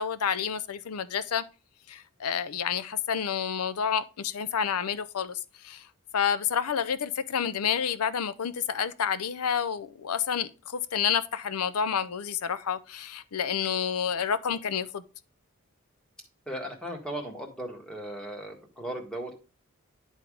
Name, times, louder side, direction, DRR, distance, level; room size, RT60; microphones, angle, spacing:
voice 1, 0.0-1.4 1.9-5.9 6.1-15.0, left 7 dB, 85° left, 0.6 m, -29 dB
voice 2, 16.5-19.3, right 1 dB, 5° left, 1.6 m, -37 dB
10.5 x 3.6 x 5.0 m
head